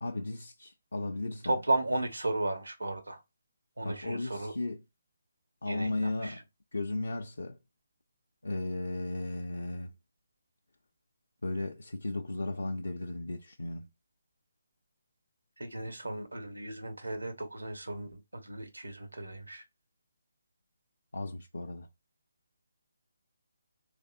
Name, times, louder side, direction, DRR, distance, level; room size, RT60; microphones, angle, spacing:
voice 1, 0.0-1.6 3.8-4.8 5.6-6.4 6.7-7.6 8.4-9.9 11.4-13.9 21.1-21.9, left 2 dB, 70° left, 0.5 m, -35 dB
voice 2, 1.4-3.2 3.8-4.5 5.7-6.4 15.6-19.6, right 2 dB, 80° right, 1.1 m, -34 dB
3.5 x 3.2 x 2.6 m
figure-of-eight pair, 145°, 0 cm